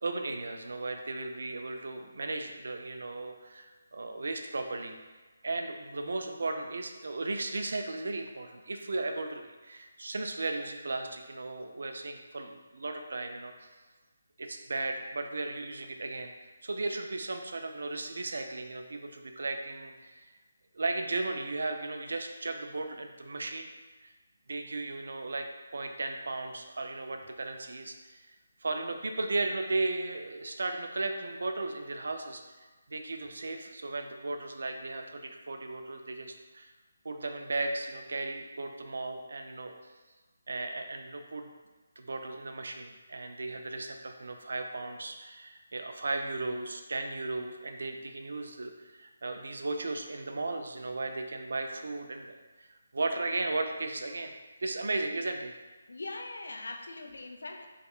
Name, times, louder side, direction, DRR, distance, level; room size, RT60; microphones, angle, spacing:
voice 1, 0.0-5.0 5.4-13.7 14.4-20.3 20.7-23.7 24.0-24.1 24.5-28.4 28.6-36.7 37.0-39.7 40.5-41.5 42.0-52.7 52.9-54.3 54.6-55.5, right 2 dB, 70° right, 5 dB, 0.3 m, -36 dB
voice 2, 55.9-57.7, left 2 dB, 85° left, 4 dB, 0.3 m, -41 dB
3.5 x 2.2 x 2.3 m, 1.3 s
hypercardioid pair, 175°, 0 cm